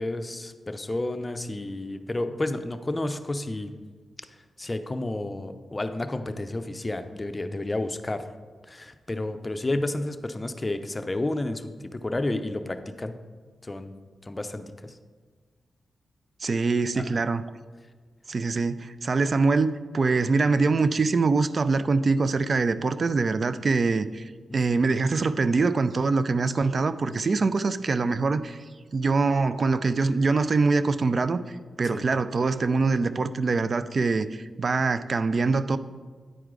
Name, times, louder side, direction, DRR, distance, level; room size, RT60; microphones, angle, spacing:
voice 1, 0.0-3.7 4.6-8.2 8.6-13.1 13.6-13.9 14.2-15.0 17.0-17.2 24.5-24.6 31.8-32.1, left 2 dB, 30° left, 9 dB, 0.6 m, -31 dB
voice 2, 16.4-17.4 18.3-28.6 28.9-35.8, right 4 dB, 55° right, 14 dB, 0.4 m, -24 dB
9.7 x 4.6 x 3.8 m, 1.5 s
supercardioid pair, 45°, 0 cm